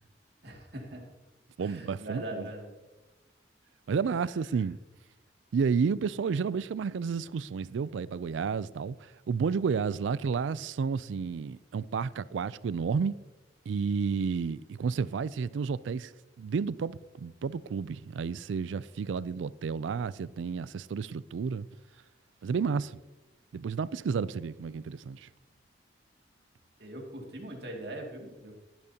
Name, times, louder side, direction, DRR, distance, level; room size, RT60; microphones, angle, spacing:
voice 1, 0.4-1.0 1.6-2.7 4.0-4.6 26.8-28.5, right 1 dB, 65° right, 2.3 m, -41 dB
voice 2, 1.6-2.5 3.9-4.8 5.5-13.2 13.7-16.1 16.4-21.7 22.4-23.0 23.5-25.3, right 5 dB, 85° right, 0.4 m, -31 dB
14.5 x 10.5 x 2.8 m
head